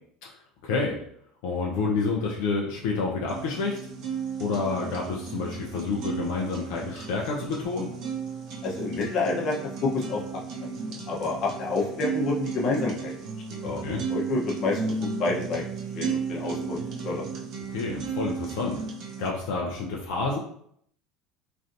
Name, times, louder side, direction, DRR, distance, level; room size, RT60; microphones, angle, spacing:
voice 1, 0.6-1.0 1.4-3.8 4.4-7.9 13.6-14.0 17.7-18.8 19.2-20.4, left 4 dB, 80° left, -2 dB, 0.5 m, -29 dB
sound 1, 3.3-19.3, right 5 dB, 60° right, 0.7 m, -34 dB
voice 2, 8.6-10.2 10.6-13.1 13.6-13.8 14.1-15.6 15.9-16.8 17.0-17.3, left 3 dB, 50° left, -2 dB, 0.9 m, -29 dB
3.2 x 2.6 x 2.6 m, 0.66 s
supercardioid pair, 110°, 0 cm